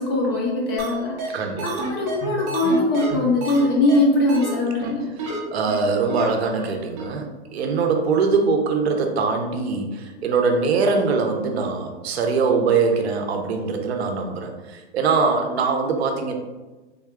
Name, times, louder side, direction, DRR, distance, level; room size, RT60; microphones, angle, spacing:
voice 1, 0.0-5.1, left 2 dB, 25° left, -2 dB, 0.4 m, -21 dB
sound 1, 0.8-0.9 1.2-1.3 1.6-3.6 3.9-4.0 4.3-4.5 4.8-4.9 5.2-5.4 5.7-5.8 6.1-6.2 6.6-6.7 7.0-7.1, right 3 dB, 30° right, 0.7 m, -29 dB
voice 2, 1.3-1.7 5.5-7.3 7.5-14.5 14.9-16.3, right 4 dB, 65° right, 4 dB, 0.7 m, -22 dB
3.6 x 2.2 x 3.5 m, 1.2 s
hypercardioid pair, 145°, 35 cm